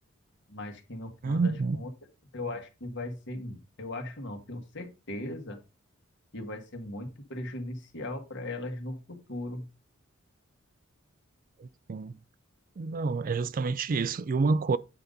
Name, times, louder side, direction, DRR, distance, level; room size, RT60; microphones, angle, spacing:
voice 1, 0.5-1.9 2.3-5.6 6.3-9.7, left 1 dB, 60° left, 1.7 m, -38 dB
voice 2, 1.2-1.8 11.6-12.1 12.8-14.8, right 4 dB, 45° right, 0.4 m, -28 dB
9.0 x 4.0 x 5.2 m
head